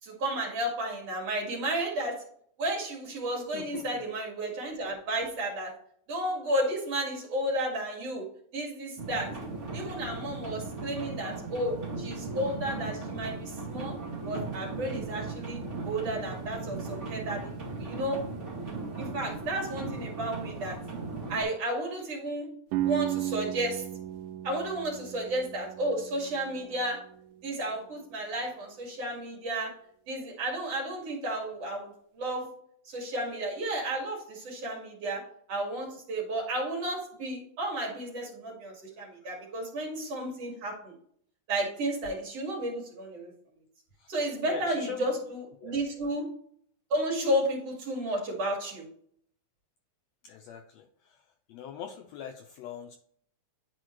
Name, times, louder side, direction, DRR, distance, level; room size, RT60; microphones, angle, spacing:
voice 1, 0.0-2.2 2.6-5.7 6.1-8.3 8.5-9.3 9.7-14.0 14.2-15.6 15.8-17.5 17.8-18.2 19.0-20.8 21.3-22.5 22.8-23.9 24.4-27.0 27.4-29.7 30.1-32.5 32.8-35.2 35.5-40.9 41.5-43.3 44.1-46.3 46.9-48.8, right 1 dB, 55° right, -2 dB, 3.1 m, -32 dB
voice 2, 3.5-4.1 44.0-44.1 44.5-45.1 45.6-45.8 50.2-51.2 51.5-53.0, left 8 dB, 80° left, 5 dB, 1.5 m, -42 dB
sound 1, 9.0-21.4, right 3 dB, 25° right, 2.0 m, -37 dB
sound 2, 22.7-28.5, right 13 dB, 85° right, 2.1 m, -36 dB
10.5 x 4.3 x 3.1 m, 0.63 s
omnidirectional pair, 3.6 m